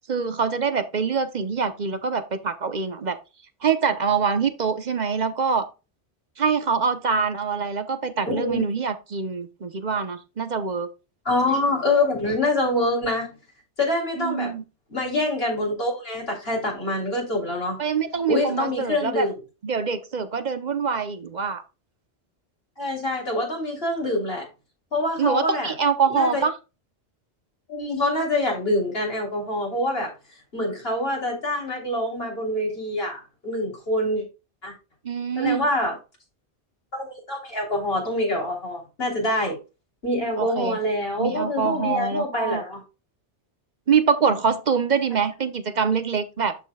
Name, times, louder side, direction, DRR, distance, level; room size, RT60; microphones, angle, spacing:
voice 1, 0.1-3.2 3.6-5.7 6.4-10.9 14.2-14.6 17.8-19.3 19.6-21.6 25.2-26.5 35.0-35.7 40.4-40.8 41.2-42.6 43.9-46.5, right 6 dB, 45° right, 0.9 m, -24 dB
voice 2, 8.3-8.6 11.3-13.3 13.8-14.5 14.9-17.8 18.3-19.3 22.8-24.5 24.9-25.7 26.1-26.4 27.7-30.1 30.5-34.2 34.6-34.7 35.4-36.0 36.9-39.6 40.0-42.8, left 1 dB, 60° left, 3.5 m, -25 dB
13.0 x 4.4 x 2.3 m
omnidirectional pair, 1.1 m